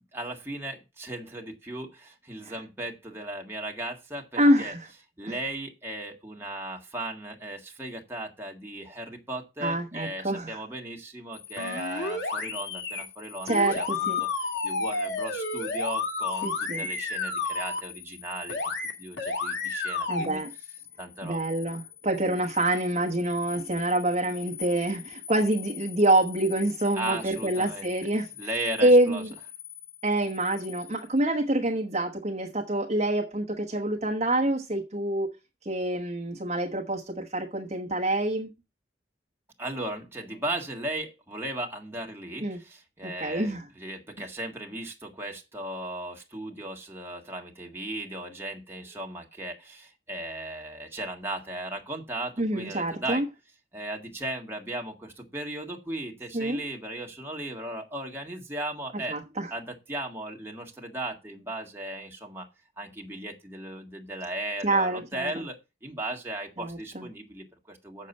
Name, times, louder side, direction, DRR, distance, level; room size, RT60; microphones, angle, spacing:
voice 1, 0.1-4.7 5.2-18.6 19.0-20.4 21.0-21.4 27.0-27.9 28.3-29.2 39.6-53.2 53.7-59.2 59.5-62.5 62.8-68.1, right 1 dB, 15° right, 1.7 m, -36 dB
voice 2, 4.4-4.9 5.2-5.3 9.6-10.6 13.5-14.2 16.4-16.9 20.1-20.5 21.2-28.3 28.8-29.3 30.0-35.3 35.6-38.5 42.4-42.6 43.0-43.6 52.4-53.3 56.3-56.6 59.1-59.5 64.6-65.3 66.6-67.1, right 1 dB, 40° right, 1.1 m, -26 dB
sound 1, 11.3-31.2, left 11 dB, 70° left, 5.2 m, -44 dB
sound 2, 11.6-13.0 13.5-17.8 18.5-18.9 19.2-20.3, left 3 dB, 90° left, 2.1 m, -31 dB
7.5 x 6.6 x 5.4 m
head